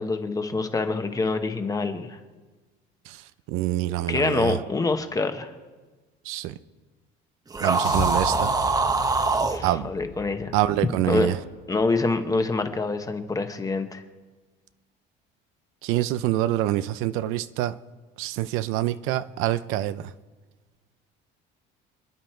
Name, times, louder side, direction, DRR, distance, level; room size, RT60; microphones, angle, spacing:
voice 1, 0.0-2.2 4.1-5.5 8.4-8.5 9.4-10.5 11.0-11.3 11.7-14.0, left 3 dB, 15° left, 7 dB, 1.2 m, -26 dB
voice 2, 3.5-4.6 6.3-6.5 7.6-8.5 9.6-9.9 10.5-11.4 15.8-17.8 18.2-20.1, right 14 dB, 80° right, 13 dB, 0.6 m, -26 dB
sound 1, 7.5-9.6, right 3 dB, 20° right, 0.9 m, -23 dB
sound 2, 7.8-12.2, left 4 dB, 85° left, 4.2 m, -36 dB
28.5 x 10.0 x 4.5 m, 1.3 s
cardioid pair, 145°, 21 cm